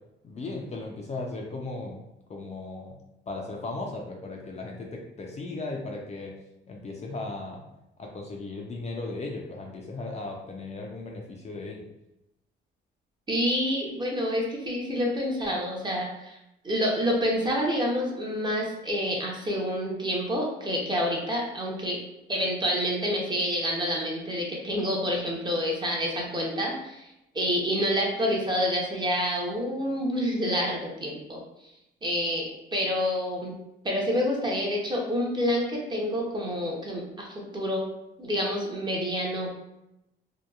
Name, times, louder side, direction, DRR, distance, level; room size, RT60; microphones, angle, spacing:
voice 1, 0.2-2.0 2.3-2.9 3.3-6.3 6.7-7.6 8.0-11.8, left 2 dB, 35° left, 0 dB, 0.4 m, -36 dB
voice 2, 13.3-16.4 16.6-22.0 22.3-31.4 32.0-33.6 33.8-37.9 38.2-39.5, equal, 20° right, -1 dB, 0.7 m, -28 dB
2.7 x 2.2 x 2.3 m, 0.88 s
cardioid pair, 90°, 20 cm